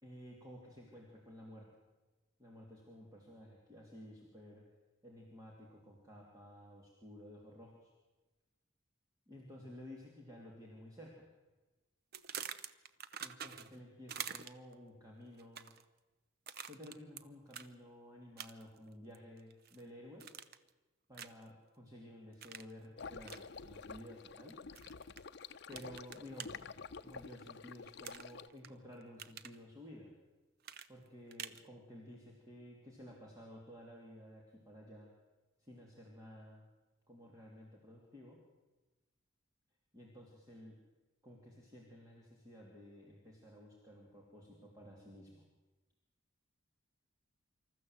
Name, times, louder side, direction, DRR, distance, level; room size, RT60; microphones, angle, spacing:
voice 1, 0.0-1.7 2.4-4.6 5.0-7.9 9.3-11.3 13.2-15.7 16.6-20.3 21.1-24.6 25.7-26.6 27.0-30.1 30.9-35.1 35.6-36.6 37.1-38.4 39.9-40.8 41.2-45.4, left 1 dB, 15° right, -2 dB, 3.0 m, -54 dB
sound 1, 12.1-13.8 14.1-14.7 15.4-15.8 16.5-17.2 17.5-17.7 18.4-18.8 19.1-19.8 20.2-20.7 21.1-21.5 22.4-22.7 23.2-23.4 24.7-25.2 25.7-26.5 28.0-28.7 29.0-29.6 30.6-31.6, right 8 dB, 50° right, 0.8 m, -46 dB
sound 2, 23.0-28.5, left 5 dB, 55° left, 0.7 m, -49 dB
26.0 x 14.0 x 7.9 m, 1.2 s
head